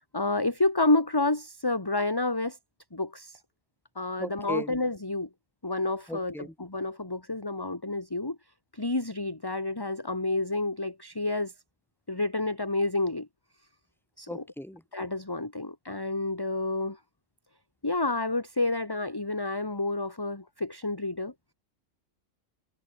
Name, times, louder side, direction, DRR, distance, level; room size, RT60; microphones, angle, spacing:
voice 1, 0.1-2.6 2.9-3.4 4.0-5.3 5.6-8.4 8.7-11.5 12.1-13.3 14.2-14.4 14.9-17.0 17.8-21.5, left 2 dB, 15° left, 2.0 m, -29 dB
voice 2, 4.2-4.7 6.1-6.5 14.3-14.8, left 1 dB, ahead, 2.9 m, -37 dB
omnidirectional pair, 1.4 m